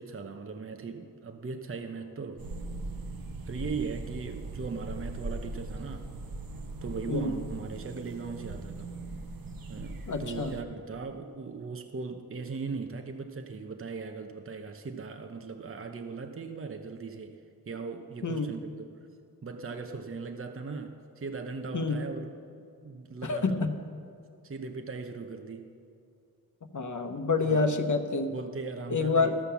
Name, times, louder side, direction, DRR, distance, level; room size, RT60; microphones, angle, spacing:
voice 1, 0.0-2.5 3.4-6.1 6.8-8.9 9.7-17.4 17.7-19.1 19.4-22.3 22.8-23.6 24.4-25.8 27.4-27.7 28.3-29.4, right 4 dB, 35° right, 5 dB, 0.8 m, -39 dB
sound 1, 2.4-10.6, right 2 dB, 65° right, 0.9 m, -40 dB
voice 2, 10.1-10.5 18.2-18.5 21.7-22.0 23.2-23.8 26.7-28.3 28.9-29.3, left 4 dB, 50° left, 6 dB, 0.9 m, -27 dB
13.5 x 5.6 x 7.0 m, 2.5 s
cardioid pair, 55°, 37 cm